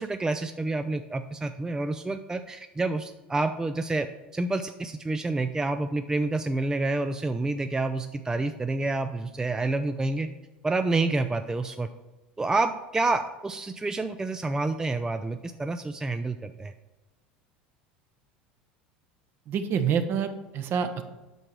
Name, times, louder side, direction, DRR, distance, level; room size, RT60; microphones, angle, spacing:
voice 1, 0.0-4.1 4.3-10.3 10.6-11.9 12.4-16.7, right 2 dB, 10° right, 9 dB, 0.4 m, -28 dB
voice 2, 19.5-21.0, right 7 dB, 45° right, 9 dB, 0.9 m, -27 dB
8.0 x 5.9 x 4.6 m, 1.1 s
hypercardioid pair, 75°, 5 cm